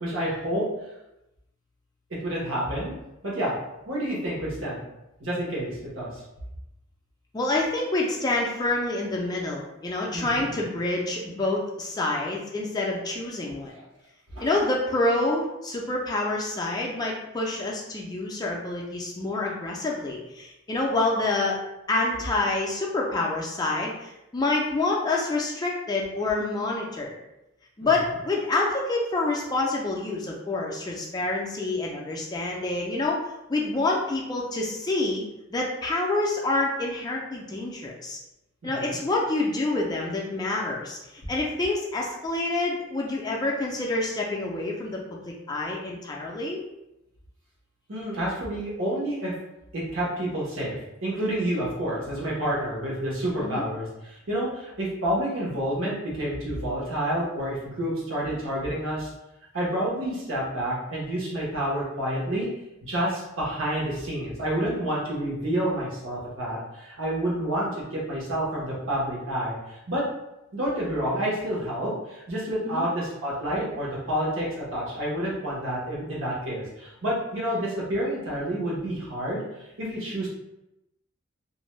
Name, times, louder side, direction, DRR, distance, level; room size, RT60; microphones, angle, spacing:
voice 1, 0.0-0.6 2.2-2.9 3.2-3.6 3.9-4.8 5.2-6.2 10.1-10.5 13.7-13.8 14.3-14.5 38.8-39.0 47.9-49.3 49.7-59.1 59.5-62.5 62.8-70.0 70.5-80.3, right 1 dB, 75° right, -5 dB, 1.0 m, -29 dB
voice 2, 7.3-13.7 14.4-21.6 21.9-27.2 27.8-33.2 33.5-35.2 35.5-38.2 38.6-46.6 53.4-53.6 72.7-72.9, left 2 dB, 20° left, -2 dB, 0.3 m, -27 dB
2.5 x 2.1 x 3.0 m, 0.91 s
head